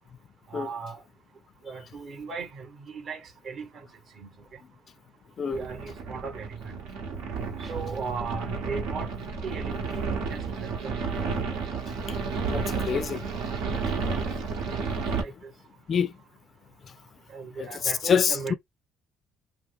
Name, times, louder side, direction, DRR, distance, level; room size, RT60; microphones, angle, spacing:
voice 1, 0.5-1.0 1.6-3.8 4.2-4.3 5.4-6.8 7.7-9.1 9.4-11.2 14.0-14.3 15.2-15.3 17.3-18.5, right 5 dB, 50° right, 1.0 m, -37 dB
sound 1, 5.5-15.2, right 5 dB, 85° right, 1.1 m, -31 dB
sound 2, 7.6-9.3, right 5 dB, 30° right, 0.7 m, -44 dB
voice 2, 12.5-13.2 15.9-16.1 17.6-17.7 18.0-18.5, left 7 dB, 40° left, 0.3 m, -25 dB
2.9 x 2.1 x 3.5 m
cardioid pair, 120°, 0 cm